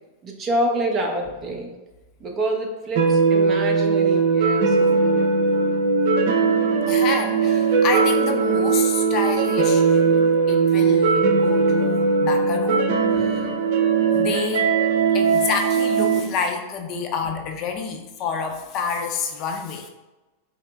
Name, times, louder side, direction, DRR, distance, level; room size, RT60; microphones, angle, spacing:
voice 1, 0.2-1.7 2.2-5.1, right 1 dB, 30° right, 2 dB, 0.8 m, -27 dB
sound 1, 2.9-16.2, right 5 dB, 60° right, 0.6 m, -19 dB
voice 2, 6.9-10.0 10.5-12.9 13.1-13.5 14.1-14.7 15.1-19.9, left 5 dB, 40° left, 4 dB, 0.5 m, -28 dB
5.5 x 2.0 x 3.5 m, 1.1 s
hypercardioid pair, 125°, 0 cm